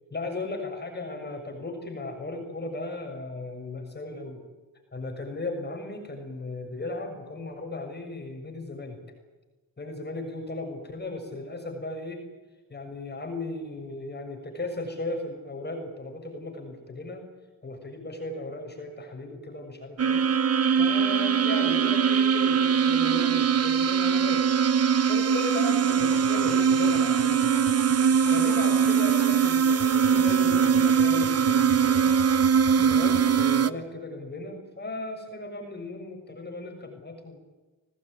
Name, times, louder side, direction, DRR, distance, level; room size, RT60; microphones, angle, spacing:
voice 1, 0.1-4.4 4.9-9.0 9.8-12.2 12.7-17.3 17.6-20.3 20.7-24.5 25.1-27.4 28.3-32.1 32.6-37.4, left 2 dB, 30° left, 4 dB, 6.8 m, -36 dB
sound 1, 20.0-33.7, right 7 dB, 45° right, 1.1 m, -22 dB
sound 2, 25.9-33.5, left 6 dB, 70° left, 4.6 m, -42 dB
26.0 x 19.0 x 9.5 m, 1.2 s
cardioid pair, 80°, 34 cm